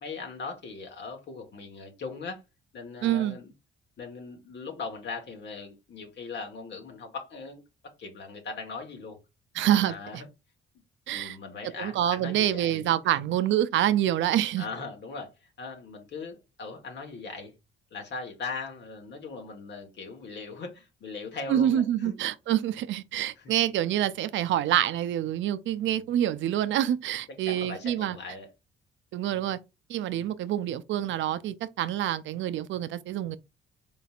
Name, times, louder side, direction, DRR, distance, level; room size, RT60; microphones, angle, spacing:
voice 1, 0.0-2.4 2.7-3.5 4.0-7.6 8.0-9.2 9.8-10.3 11.1-13.2 14.6-17.5 17.9-22.1 23.4-23.5 25.8-26.1 27.4-28.5, left 4 dB, 60° left, 1.4 m, -39 dB
voice 2, 3.0-3.4 9.6-9.9 11.1-11.4 11.8-14.6 21.5-28.2 29.1-29.6 29.9-33.4, right 11 dB, 75° right, 0.5 m, -26 dB
4.2 x 3.8 x 2.4 m
cardioid pair, 90°, 20 cm